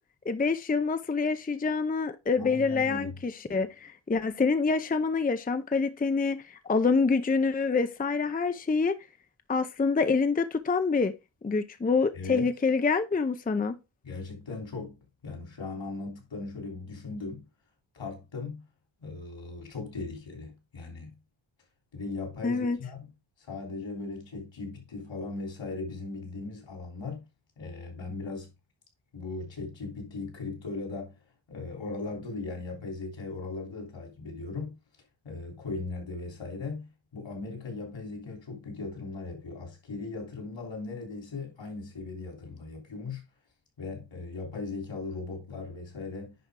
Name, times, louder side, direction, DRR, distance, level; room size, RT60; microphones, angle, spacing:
voice 1, 0.3-9.0 9.5-11.1 11.4-13.8 22.4-22.8, left 4 dB, 20° left, 0.5 m, -26 dB
voice 2, 2.4-3.1 12.1-12.5 14.0-17.5 17.9-18.6 19.0-21.1 21.9-23.1 23.4-27.2 27.6-28.5 29.1-31.1 31.5-34.8 35.2-43.2 43.8-46.3, left 3 dB, 75° left, 3.5 m, -38 dB
10.5 x 4.5 x 3.7 m
wide cardioid pair, 140°, 45 cm